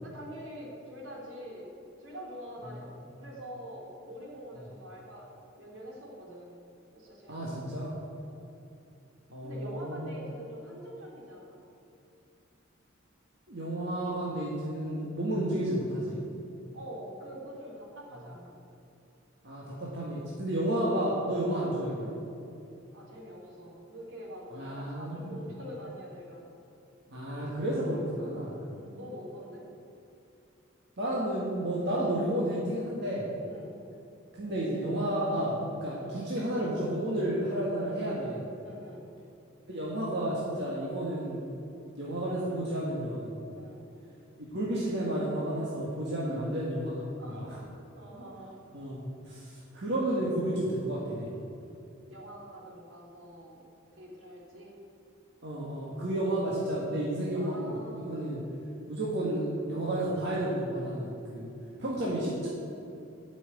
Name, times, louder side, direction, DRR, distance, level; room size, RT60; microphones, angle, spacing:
voice 1, 0.0-2.8 3.2-6.5 6.9-7.7 8.2-8.5 9.4-11.6 16.7-18.5 21.5-21.7 22.9-26.5 28.7-29.6 33.5-33.8 35.9-36.2 38.6-39.1 43.5-43.9 46.2-46.4 47.2-47.6 48.0-48.5 52.1-53.6 53.9-54.7 57.3-58.2, equal, 75° right, -3 dB, 3.2 m, -45 dB
voice 2, 7.3-8.0 9.3-10.1 13.5-16.2 19.4-22.2 24.5-25.5 27.1-28.6 31.0-33.2 34.3-38.5 39.7-41.4 42.0-43.4 44.5-47.0 47.3-47.6 48.7-51.3 55.4-58.4 58.9-61.5 61.8-62.5, right 1 dB, 55° right, -5 dB, 1.8 m, -31 dB
12.0 x 6.2 x 8.1 m, 2.7 s
head